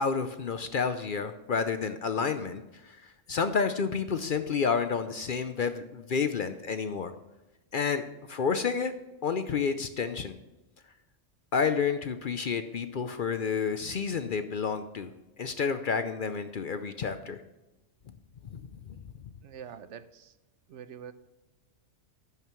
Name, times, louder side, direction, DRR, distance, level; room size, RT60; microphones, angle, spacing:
voice 1, 0.0-7.1 7.7-8.0 8.3-8.9 9.2-10.4 11.5-15.1 15.4-17.4 18.5-18.6 18.9-19.0, left 5 dB, 55° left, 10 dB, 0.7 m, -30 dB
voice 2, 19.4-20.4 20.7-21.1, right 8 dB, 70° right, 13 dB, 0.9 m, -45 dB
11.5 x 9.0 x 3.1 m, 1.0 s
omnidirectional pair, 1.3 m